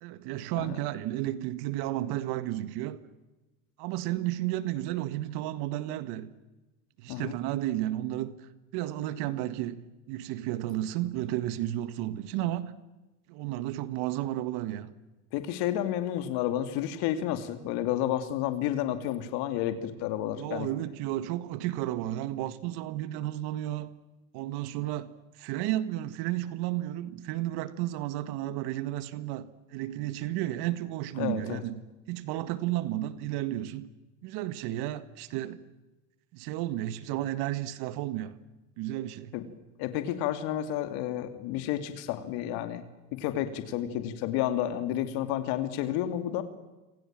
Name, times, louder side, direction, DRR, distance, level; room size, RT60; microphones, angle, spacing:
voice 1, 0.0-3.1 3.8-6.3 7.0-12.7 13.3-14.9 20.4-24.0 24.3-31.8 32.1-33.9 34.2-35.7 36.3-38.4 38.8-39.4, right 14 dB, 70° right, 1.9 m, -33 dB
voice 2, 15.3-20.7 31.2-31.6 39.3-39.4 39.8-42.8 43.1-46.4, left 11 dB, 70° left, 2.8 m, -31 dB
28.0 x 27.0 x 7.6 m
supercardioid pair, 100°, 41 cm